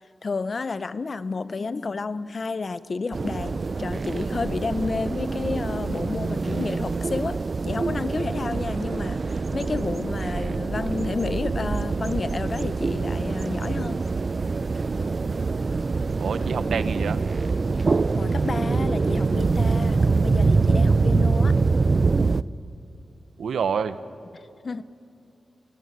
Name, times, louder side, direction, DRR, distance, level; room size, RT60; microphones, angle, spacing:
voice 1, 0.2-14.0 17.8-21.5 24.3-24.8, left 4 dB, 45° left, 15 dB, 0.7 m, -31 dB
sound 1, 3.1-22.4, right 4 dB, 40° right, 0.5 m, -24 dB
voice 2, 16.2-17.2 23.4-24.0, right 6 dB, 85° right, 13 dB, 0.9 m, -27 dB
28.5 x 17.5 x 9.5 m, 2.7 s
wide cardioid pair, 115°, 0 cm